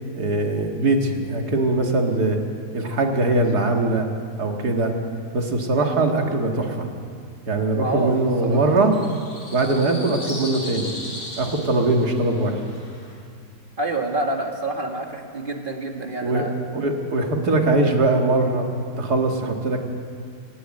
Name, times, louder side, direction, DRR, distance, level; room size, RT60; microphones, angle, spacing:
voice 1, 0.1-2.4 2.7-4.1 4.4-4.9 5.3-6.9 7.5-8.9 9.5-10.9 11.4-12.6 16.2-16.5 16.7-18.7 19.0-19.8, right 2 dB, 75° right, 2 dB, 2.6 m, -21 dB
voice 2, 7.7-8.6 13.8-16.6, right 2 dB, 30° right, 2 dB, 2.1 m, -27 dB
sound 1, 8.0-13.2, left 1 dB, 55° left, 5.6 m, -38 dB
27.0 x 11.5 x 9.0 m, 2.2 s
omnidirectional pair, 1.7 m